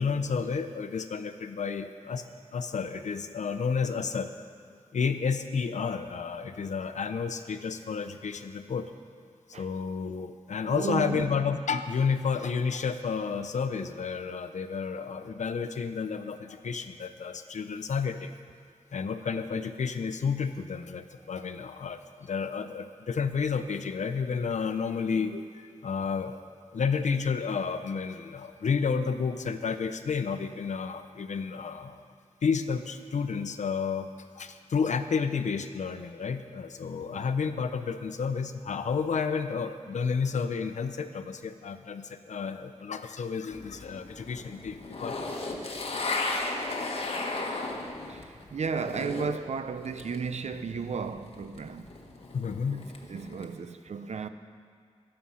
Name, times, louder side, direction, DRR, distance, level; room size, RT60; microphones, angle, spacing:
voice 1, 0.0-2.2 2.5-4.5 4.9-8.9 9.6-18.3 18.9-26.4 26.7-32.0 32.4-34.1 34.4-45.3 52.3-52.9, left 5 dB, 80° left, 0.8 m, -31 dB
voice 2, 10.6-11.3 48.1-51.9 52.7-52.8 53.1-54.3, right 5 dB, 70° right, 0.7 m, -34 dB
sound 1, 43.5-49.4 49.7-53.5, left 2 dB, 55° left, 1.5 m, -36 dB
23.0 x 7.8 x 5.7 m
wide cardioid pair, 115°, 12 cm